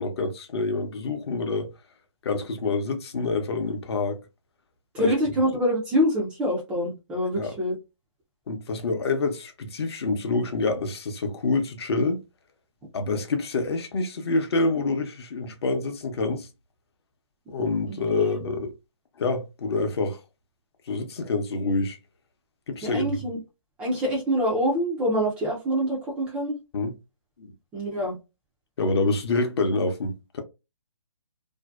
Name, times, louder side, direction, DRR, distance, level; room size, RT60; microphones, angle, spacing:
voice 1, 0.0-1.7 2.2-4.2 5.0-5.1 7.4-7.6 8.5-12.2 12.9-16.5 17.5-18.7 19.2-20.2 20.9-22.0 22.7-23.2 26.7-26.9 27.4-27.5 28.8-30.4, left 3 dB, 55° left, 0.6 m, -27 dB
voice 2, 4.9-7.8 17.9-18.4 22.8-23.4 23.8-26.6 27.7-28.2, equal, 5° right, 0.3 m, -25 dB
2.6 x 2.1 x 2.2 m
hypercardioid pair, 150°, 16 cm